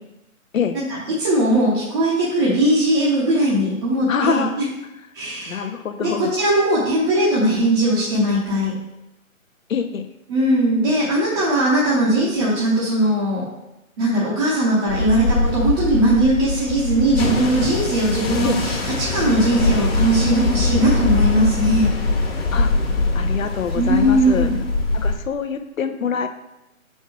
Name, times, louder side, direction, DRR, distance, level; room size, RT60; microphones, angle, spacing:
voice 1, 1.2-4.7 5.1-5.6 6.0-8.7 10.3-13.4 14.0-21.9 23.7-24.6, right 1 dB, 20° right, -8 dB, 0.8 m, -19 dB
voice 2, 4.1-4.7 5.5-6.3 9.7-10.1 18.4-18.6 22.5-22.7 23.1-24.5 24.9-26.3, left 7 dB, 70° left, 9 dB, 0.8 m, -25 dB
sound 1, 14.9-25.2, left 3 dB, 45° left, 1.3 m, -22 dB
5.9 x 4.5 x 4.5 m, 0.94 s
hypercardioid pair, 150°, 42 cm